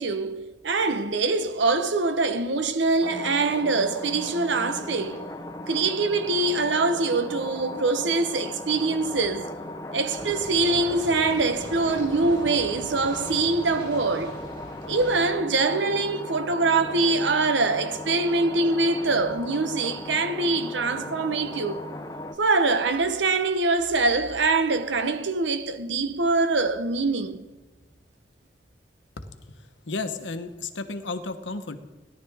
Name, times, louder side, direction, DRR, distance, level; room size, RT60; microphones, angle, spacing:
voice 1, 0.0-5.2 5.7-9.5 9.9-14.4 14.9-21.8 22.4-27.4, right 3 dB, 85° right, 0.9 m, -24 dB
sound 1, 3.0-22.3, left 1 dB, 20° left, 0.7 m, -37 dB
sound 2, 10.2-15.2, equal, 25° right, 4.8 m, -41 dB
voice 2, 29.2-31.8, left 3 dB, 90° left, 1.0 m, -34 dB
17.5 x 11.0 x 3.6 m
head